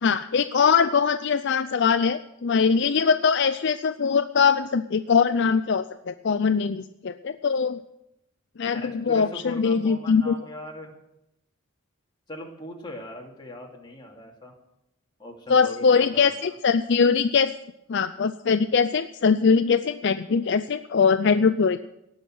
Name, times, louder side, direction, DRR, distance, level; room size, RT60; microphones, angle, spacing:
voice 1, 0.0-7.8 8.6-10.3 15.5-17.5 17.9-21.8, left 5 dB, 55° left, 11 dB, 0.5 m, -22 dB
voice 2, 8.7-10.9 12.3-14.5 15.2-16.6, left 1 dB, 20° left, -1 dB, 2.5 m, -40 dB
18.0 x 6.4 x 9.2 m, 0.84 s
head